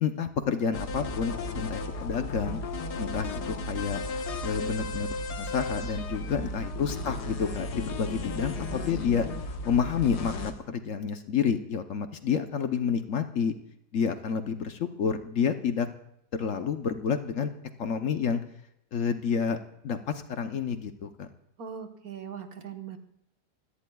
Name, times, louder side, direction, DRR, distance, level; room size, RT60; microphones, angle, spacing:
voice 1, 0.0-2.6 3.0-3.3 3.7-4.0 4.4-5.1 5.4-9.3 9.6-13.5 13.9-15.9 16.4-17.5 17.8-18.4 18.9-19.6 19.8-21.3, left 6 dB, 60° left, 8 dB, 1.1 m, -29 dB
sound 1, 0.7-10.5, left 2 dB, 85° left, 1.8 m, -34 dB
voice 2, 6.3-6.6 21.6-23.0, right 7 dB, 65° right, 5 dB, 1.6 m, -40 dB
26.0 x 17.0 x 2.3 m, 0.77 s
omnidirectional pair, 1.7 m